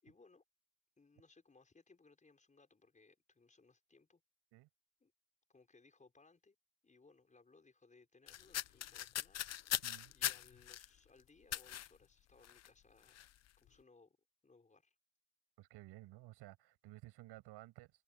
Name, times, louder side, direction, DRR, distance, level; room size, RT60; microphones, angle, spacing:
voice 1, 0.0-0.4 1.0-4.2 5.0-5.1 5.5-6.6 6.8-9.8 10.1-13.3 13.6-14.2 14.4-15.0, left 3 dB, 15° left, 6.0 m, -66 dB
sound 1, 8.3-10.9 11.5-11.9 12.4-12.7 13.0-13.3, left 12 dB, 35° left, 0.8 m, -40 dB
voice 2, 9.8-10.1 15.6-17.9, right 17 dB, 65° right, 6.2 m, -55 dB
cardioid pair, 120°, 44 cm